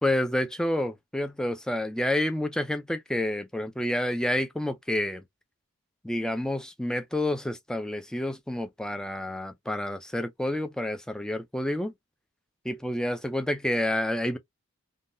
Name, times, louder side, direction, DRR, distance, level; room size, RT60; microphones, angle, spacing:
voice 1, 0.0-5.2 6.0-11.9 12.6-14.4, left 1 dB, 5° left, 0.4 m, -29 dB
3.5 x 2.3 x 2.5 m
head